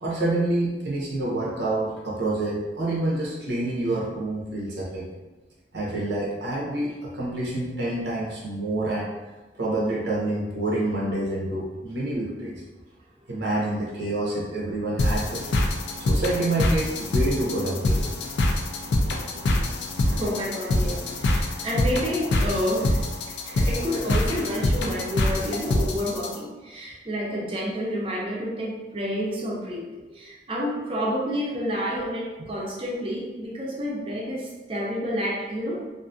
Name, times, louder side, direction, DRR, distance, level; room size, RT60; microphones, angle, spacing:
voice 1, 0.0-5.1 5.7-9.1 9.5-12.6 13.3-15.5 16.0-18.0 19.3-19.4 29.9-30.1, right 2 dB, 75° right, -4 dB, 0.6 m, -27 dB
sound 1, 15.0-26.4, left 1 dB, 75° left, 0.3 m, -25 dB
voice 2, 20.1-23.0 23.4-29.9 30.1-35.9, equal, 30° right, -4 dB, 0.5 m, -29 dB
2.5 x 2.4 x 2.4 m, 1.2 s
head